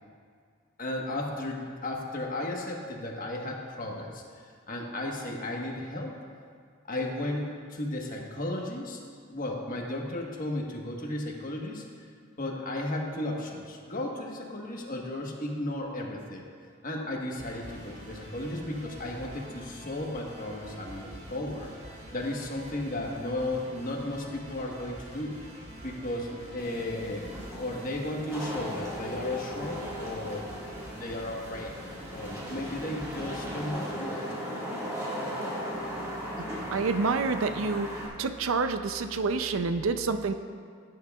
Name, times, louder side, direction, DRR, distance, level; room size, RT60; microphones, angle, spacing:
voice 1, 0.8-6.1 6.8-9.0 9.3-11.8 12.4-16.4 16.8-21.7 22.1-25.4 25.8-30.4 30.9-31.7 32.1-34.2, left 1 dB, 45° left, 0 dB, 1.3 m, -34 dB
sound 1, 17.3-33.7, right 1 dB, 35° right, 2.1 m, -46 dB
Wind / Rain, 26.6-38.1, equal, 15° right, 1.8 m, -37 dB
voice 2, 36.4-37.9 38.2-40.3, right 4 dB, 75° right, 9 dB, 0.5 m, -28 dB
17.0 x 9.5 x 2.4 m, 2.1 s
head